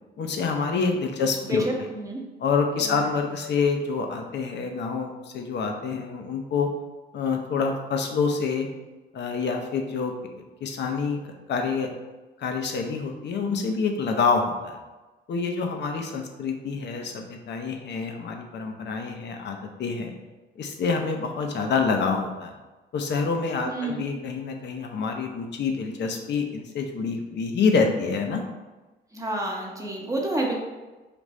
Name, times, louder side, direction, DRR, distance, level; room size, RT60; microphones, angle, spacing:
voice 1, 0.2-1.6 2.4-6.7 7.1-8.7 9.1-10.1 10.6-11.2 11.5-11.9 12.4-14.8 15.3-20.1 20.6-22.5 22.9-28.4, left 5 dB, 60° left, 3 dB, 0.7 m, -27 dB
voice 2, 1.4-2.2 2.8-3.1 23.7-24.0 29.1-30.5, right 1 dB, 15° right, -2 dB, 0.9 m, -29 dB
5.1 x 2.5 x 3.1 m, 1.2 s
cardioid pair, 90°, 20 cm